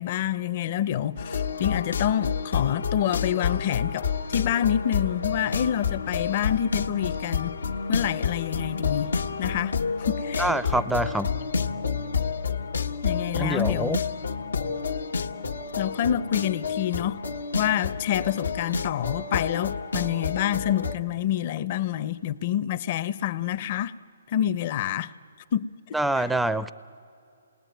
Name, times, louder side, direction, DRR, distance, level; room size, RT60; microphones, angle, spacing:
voice 1, 0.0-7.6 7.9-10.8 13.0-14.0 15.8-17.2 17.5-23.9 24.3-25.1 25.5-26.3, left 10 dB, 40° left, 0.8 m, -27 dB
sound 1, 1.2-21.0, left 5 dB, 85° left, 1.3 m, -29 dB
voice 2, 10.4-11.3 13.4-14.0 25.9-26.7, right 1 dB, 5° right, 0.6 m, -25 dB
28.0 x 20.0 x 9.3 m
hypercardioid pair, 150°, 0 cm